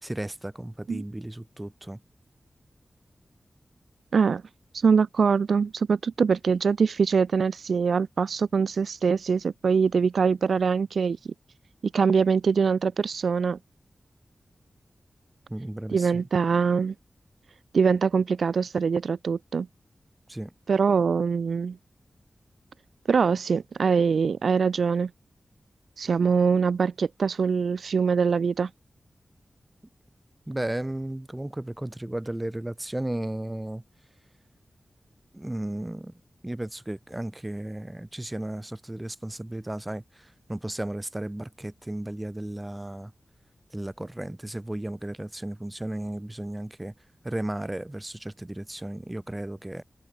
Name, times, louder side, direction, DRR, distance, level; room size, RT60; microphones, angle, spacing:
voice 1, 0.0-2.0 15.5-16.2 20.3-20.5 30.5-33.8 35.3-36.1 36.4-43.1 43.7-46.9 47.2-49.8, right 1 dB, 15° right, 2.9 m, -34 dB
voice 2, 4.7-11.3 11.8-13.6 15.9-16.9 17.7-19.7 20.7-21.8 23.1-25.1 26.0-28.7, right 5 dB, 90° right, 0.4 m, -23 dB
wide cardioid pair, 105°, 0 cm